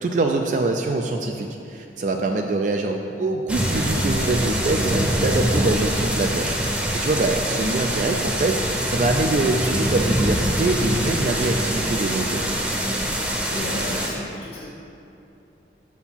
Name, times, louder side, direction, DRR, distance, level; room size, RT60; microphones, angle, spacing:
voice 1, 0.0-6.6 6.9-8.6 8.9-12.4, right 2 dB, 45° right, 3 dB, 0.3 m, -24 dB
sound 1, 3.5-14.1, equal, 5° right, 0.7 m, -24 dB
voice 2, 13.5-14.7, left 1 dB, 60° left, -9 dB, 1.2 m, -33 dB
6.9 x 4.3 x 5.7 m, 2.8 s
head